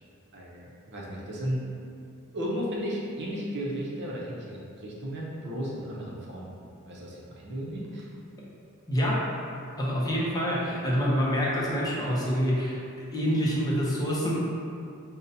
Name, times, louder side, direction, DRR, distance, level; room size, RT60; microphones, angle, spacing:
voice 1, 0.3-1.6 2.3-8.1, equal, 55° right, -4 dB, 0.6 m, -34 dB
voice 2, 8.9-9.3 9.8-12.8 13.1-14.3, equal, 15° left, -6 dB, 0.6 m, -26 dB
5.3 x 2.1 x 2.7 m, 2.4 s
head